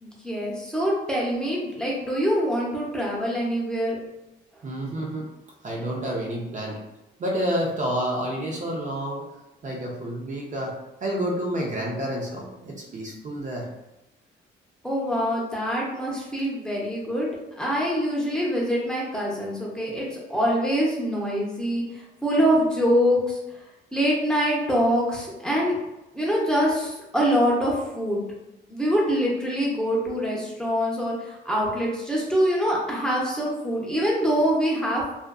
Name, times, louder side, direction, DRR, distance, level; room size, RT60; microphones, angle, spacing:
voice 1, 0.0-4.0 14.8-17.3 17.6-23.4 23.9-25.8 26.1-28.3 28.7-35.1, equal, 5° left, -4 dB, 0.7 m, -24 dB
voice 2, 4.6-5.3 5.6-6.8 7.2-9.3 9.6-13.7, right 1 dB, 40° right, -2 dB, 0.5 m, -29 dB
2.5 x 2.4 x 2.3 m, 0.95 s
cardioid pair, 90°, 20 cm